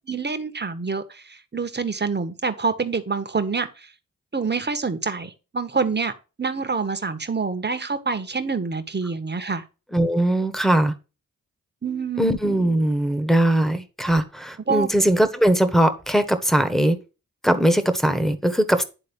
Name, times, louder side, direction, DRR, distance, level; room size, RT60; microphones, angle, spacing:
voice 1, 0.1-3.9 4.3-6.1 6.4-9.6 11.8-12.3 14.7-14.9, right 4 dB, 30° right, 1.4 m, -26 dB
voice 2, 9.9-10.9 12.2-17.0 17.4-18.8, right 1 dB, ahead, 1.4 m, -20 dB
10.0 x 3.8 x 5.3 m
cardioid pair, 50°, 34 cm